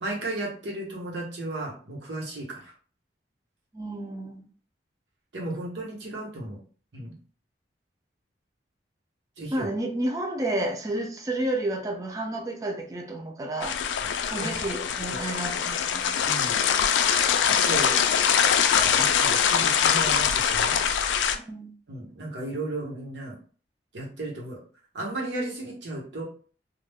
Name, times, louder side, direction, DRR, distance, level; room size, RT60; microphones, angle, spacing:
voice 1, 0.0-2.7 5.3-6.6 6.9-7.1 9.4-9.7 14.0-14.1 14.4-14.5 15.1-15.2 16.2-16.6 17.5-18.0 18.9-20.8 21.9-23.4 23.9-24.6 24.9-26.2, right 2 dB, 80° right, -3 dB, 1.0 m, -34 dB
voice 2, 3.7-4.4 9.5-13.8 14.3-16.2 21.3-21.7, right 1 dB, 20° right, 2 dB, 0.3 m, -31 dB
sound 1, 13.6-21.4, left 8 dB, 85° left, 0.3 m, -23 dB
2.3 x 2.1 x 3.4 m, 0.41 s
head